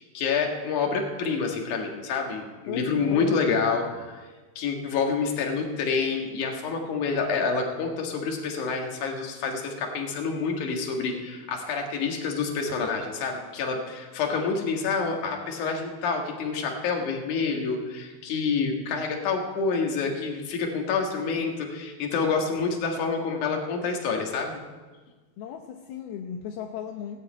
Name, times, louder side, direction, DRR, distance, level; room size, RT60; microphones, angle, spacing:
voice 1, 0.0-4.2 4.6-24.6, left 5 dB, 55° left, 2 dB, 2.8 m, -28 dB
voice 2, 2.7-3.8 25.4-27.2, left 8 dB, 75° left, 3 dB, 2.6 m, -37 dB
17.0 x 7.6 x 8.8 m, 1.4 s
omnidirectional pair, 4.6 m